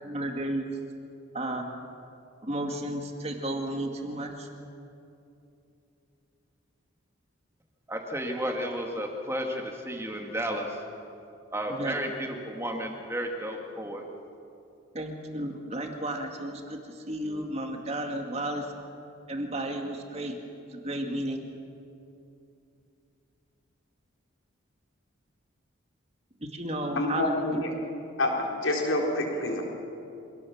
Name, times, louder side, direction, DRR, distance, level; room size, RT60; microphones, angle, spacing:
voice 1, 0.0-0.7 1.3-1.6 2.4-4.5 11.7-12.0 14.9-18.7 19.3-20.4 20.7-21.4 26.4-27.6, right 1 dB, 30° right, 3 dB, 2.2 m, -33 dB
voice 2, 7.9-10.8 11.5-14.0, equal, 15° right, 2 dB, 2.1 m, -32 dB
voice 3, 27.0-27.7 28.2-29.6, left 2 dB, 75° left, 0 dB, 3.9 m, -27 dB
25.5 x 18.0 x 7.3 m, 2.7 s
head